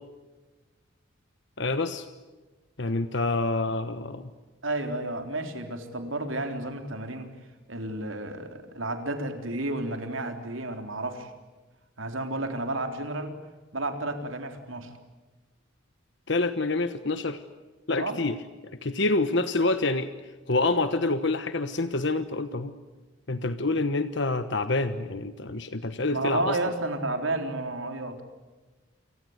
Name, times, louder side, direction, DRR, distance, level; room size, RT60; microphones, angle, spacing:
voice 1, 1.6-2.1 2.8-4.3 16.3-17.4 17.9-18.4 18.6-20.1 20.5-22.7 23.3-26.6, left 2 dB, 60° left, 10 dB, 1.2 m, -27 dB
voice 2, 4.6-7.3 7.7-11.3 12.0-13.4 13.7-14.9 18.0-18.2 26.1-28.2, right 2 dB, 75° right, 6 dB, 3.9 m, -31 dB
29.5 x 25.0 x 8.1 m, 1.2 s
head